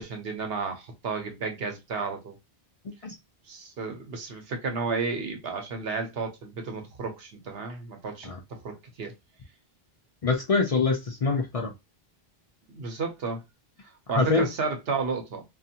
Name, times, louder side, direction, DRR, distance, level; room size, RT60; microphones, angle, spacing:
voice 1, 0.0-2.3 3.5-9.1 12.7-13.4 14.1-15.4, right 4 dB, 75° right, 1.0 m, -32 dB
voice 2, 2.9-3.2 8.2-8.4 10.2-11.7 14.2-14.5, left 4 dB, 50° left, 0.5 m, -25 dB
2.5 x 2.4 x 2.7 m
omnidirectional pair, 1.0 m